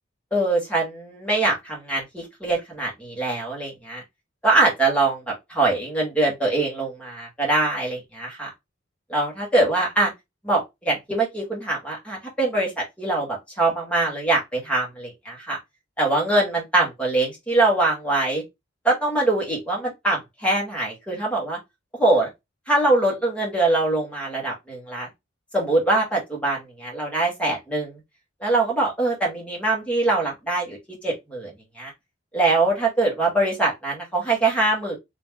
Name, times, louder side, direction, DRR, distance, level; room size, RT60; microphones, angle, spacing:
voice 1, 0.3-4.0 4.4-8.5 9.1-10.1 10.4-15.6 16.0-18.4 18.8-21.6 22.0-22.3 22.7-25.1 25.5-28.0 28.4-30.8 31.0-31.9 32.3-35.0, right 2 dB, 5° left, 1.5 m, -23 dB
3.0 x 3.0 x 3.6 m
head